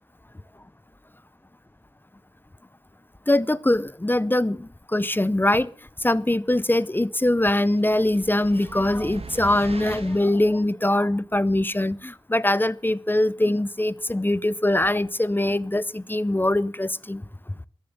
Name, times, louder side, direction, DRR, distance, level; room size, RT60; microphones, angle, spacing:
voice 1, 3.3-5.7 6.0-17.2, left 1 dB, 20° left, 0.6 m, -22 dB
sound 1, 7.8-10.4, right 3 dB, 85° right, 1.6 m, -39 dB
14.0 x 10.0 x 6.8 m
wide cardioid pair, 60°, 10 cm